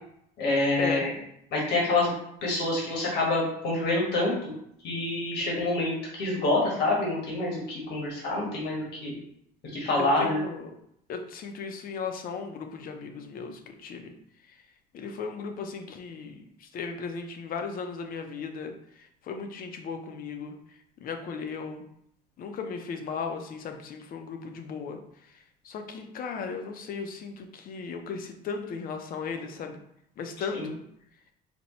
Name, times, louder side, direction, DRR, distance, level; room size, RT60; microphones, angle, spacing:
voice 1, 0.4-1.1 1.5-2.1 2.4-4.3 4.8-9.1 9.7-10.4 30.5-30.7, left 2 dB, 75° left, -3 dB, 1.3 m, -27 dB
voice 2, 10.0-10.7 11.1-14.1 14.9-18.7 19.0-20.5 21.0-21.8 22.4-25.0 25.6-29.8 30.2-30.8, left 5 dB, 60° left, 5 dB, 0.6 m, -36 dB
4.3 x 2.2 x 4.1 m, 0.73 s
cardioid pair, 110°, 17 cm